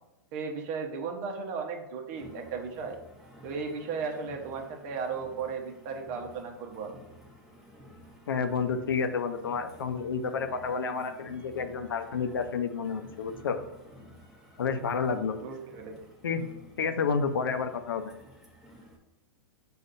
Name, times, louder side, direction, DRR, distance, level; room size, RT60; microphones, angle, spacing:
voice 1, 0.3-3.0 3.4-7.0 15.4-16.0, right 5 dB, 45° right, 3 dB, 0.9 m, -35 dB
sound 1, 2.1-19.0, equal, ahead, 1.0 m, -52 dB
voice 2, 8.3-13.6 14.6-15.3 16.2-16.5 16.8-18.1, left 5 dB, 80° left, 7 dB, 0.5 m, -30 dB
6.4 x 2.5 x 2.5 m, 0.94 s
hypercardioid pair, 110°, 12 cm